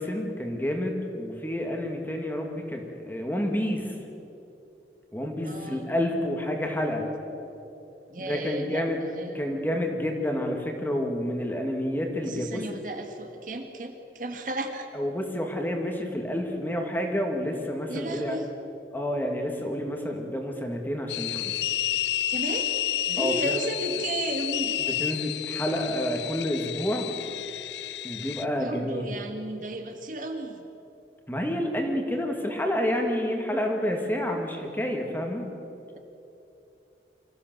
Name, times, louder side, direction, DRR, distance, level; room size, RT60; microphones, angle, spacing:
voice 1, 0.0-3.9 5.1-7.1 8.2-9.0 9.3-12.7 14.9-18.4 18.9-21.5 23.2-23.6 24.8-27.1 28.0-29.1 31.3-35.5, left 1 dB, 10° left, 2 dB, 2.1 m, -29 dB
voice 2, 5.4-5.9 8.1-9.4 12.2-14.9 17.9-18.5 21.5-21.6 22.3-22.8 23.1-24.8 28.6-30.7, right 1 dB, 50° right, 5 dB, 1.7 m, -34 dB
sound 1, 21.1-28.4, left 12 dB, 80° left, 0.6 m, -30 dB
25.5 x 15.0 x 7.7 m, 2.8 s
head